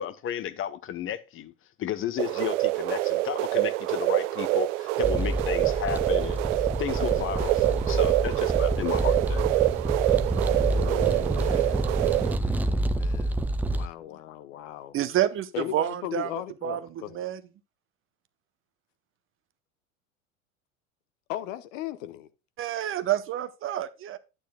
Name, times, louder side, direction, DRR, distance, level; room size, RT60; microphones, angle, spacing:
voice 1, 0.0-1.5 1.8-9.4, left 10 dB, 30° left, 0.9 m, -33 dB
sound 1, 2.2-12.4, right 18 dB, 60° right, 0.6 m, -26 dB
sound 2, 5.0-13.9, right 1 dB, 5° right, 0.3 m, -28 dB
voice 2, 10.7-15.0 15.5-17.2 21.3-22.3, left 12 dB, 65° left, 1.0 m, -38 dB
voice 3, 14.9-16.3 16.6-16.8 17.1-17.4 22.6-24.2, right 12 dB, 30° right, 0.8 m, -28 dB
10.0 x 8.9 x 2.2 m
hypercardioid pair, 95°, 41 cm